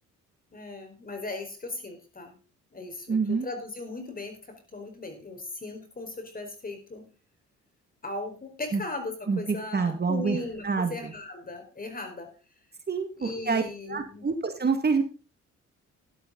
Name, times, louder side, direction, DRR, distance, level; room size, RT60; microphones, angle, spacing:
voice 1, 0.5-2.3 2.7-7.0 8.0-12.3 13.2-14.3, left 2 dB, 30° left, 5 dB, 4.6 m, -38 dB
voice 2, 3.1-3.5 8.7-8.8 9.3-10.4 10.6-11.1 12.9-13.6 13.9-15.0, right 5 dB, 35° right, 7 dB, 1.9 m, -27 dB
12.5 x 11.5 x 3.9 m, 0.32 s
cardioid pair, 90°, 30 cm